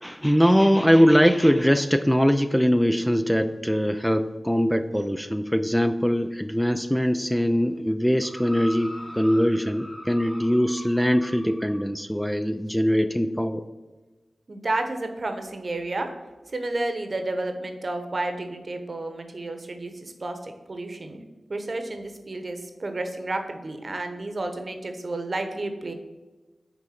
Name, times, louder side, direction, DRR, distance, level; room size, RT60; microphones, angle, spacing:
voice 1, 0.0-13.6, equal, ahead, 9 dB, 0.4 m, -22 dB
sound 1, 8.2-11.9 12.7-12.8, equal, 25° left, 1.8 m, -41 dB
voice 2, 14.5-16.1 16.5-21.2 21.5-25.9, right 2 dB, 55° right, 6 dB, 1.0 m, -31 dB
6.1 x 3.9 x 5.8 m, 1.2 s
cardioid pair, 40°, 0 cm